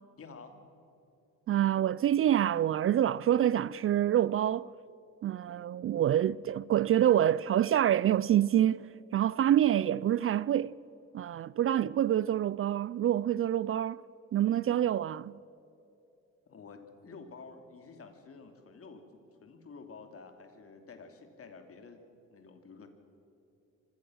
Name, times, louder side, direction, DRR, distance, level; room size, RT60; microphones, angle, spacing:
voice 1, 0.2-0.5 16.5-22.0 22.3-22.9, left 4 dB, 50° left, 2.9 m, -50 dB
voice 2, 1.5-4.7 5.2-10.8 11.1-14.0 14.3-15.3, right 11 dB, 45° right, 0.4 m, -27 dB
25.0 x 17.0 x 6.4 m
cardioid pair, 90°, 30 cm